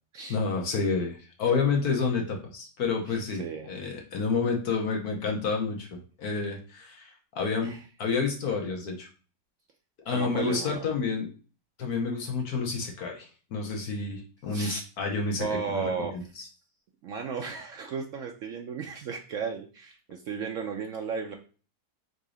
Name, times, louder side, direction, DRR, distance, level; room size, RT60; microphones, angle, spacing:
voice 1, 0.3-9.1 10.0-11.3 11.8-16.4, left 4 dB, 60° left, 1 dB, 1.3 m, -29 dB
voice 2, 3.1-3.7 7.6-7.8 10.1-10.9 14.5-14.8 15.4-16.1 17.0-21.3, right 6 dB, 80° right, 3 dB, 0.6 m, -34 dB
3.9 x 2.7 x 4.8 m, 0.38 s
omnidirectional pair, 1.9 m